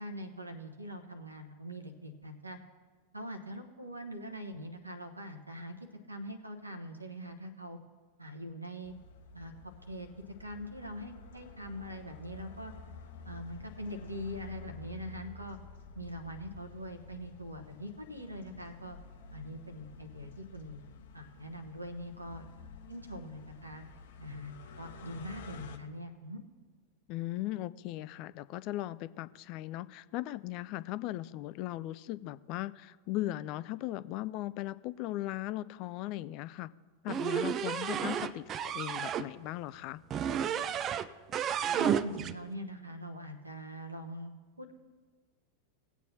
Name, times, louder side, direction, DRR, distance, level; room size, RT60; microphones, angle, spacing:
voice 1, 0.0-2.6 3.1-5.8 6.1-7.8 8.2-8.9 9.3-9.5 9.9-10.1 10.4-12.7 13.3-15.6 15.9-19.0 19.3-20.8 21.1-22.5 22.9-23.8 24.2-26.4 41.8-44.3 44.6-44.7, equal, 85° right, 6 dB, 1.0 m, -43 dB
sound 1, 8.8-25.8, left 4 dB, 60° left, 0.8 m, -51 dB
voice 2, 27.1-36.7 37.0-40.0, left 16 dB, 40° left, 17 dB, 0.3 m, -38 dB
sound 2, 37.1-39.3 40.1-41.1 41.3-42.3, right 8 dB, 30° right, 0.4 m, -32 dB
18.5 x 8.2 x 2.8 m, 1.4 s
figure-of-eight pair, 90°, 0 cm